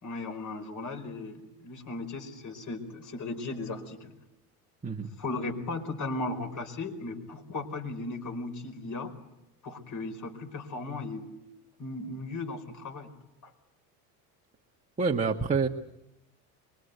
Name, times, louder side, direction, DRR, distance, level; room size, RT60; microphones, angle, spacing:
voice 1, 0.0-4.1 5.2-9.1 9.6-11.3 11.8-13.1 13.4-13.5, left 3 dB, 40° left, 5 dB, 4.9 m, -36 dB
voice 2, 15.0-15.7, right 4 dB, 15° right, -1 dB, 1.6 m, -27 dB
23.5 x 22.0 x 8.1 m, 0.89 s
hypercardioid pair, 85°, 47 cm